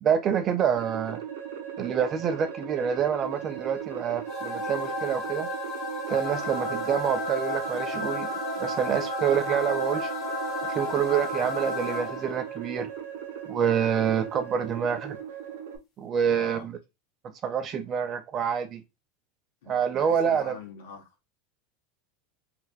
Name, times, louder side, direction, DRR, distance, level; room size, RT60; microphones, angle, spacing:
voice 1, 0.0-1.2 1.8-5.5 6.1-8.3 8.6-10.1 10.7-12.9 13.5-15.2 16.0-16.8 17.4-18.8 19.7-20.5, right 8 dB, 20° right, 0.4 m, -27 dB
sound 1, 0.8-15.8, right 8 dB, 85° right, 0.7 m, -38 dB
sound 2, 4.3-12.5, left 1 dB, 25° left, 0.7 m, -32 dB
voice 2, 16.3-16.7 19.6-21.1, left 6 dB, 80° left, 1.0 m, -45 dB
3.3 x 3.1 x 2.3 m
supercardioid pair, 180°, 0 cm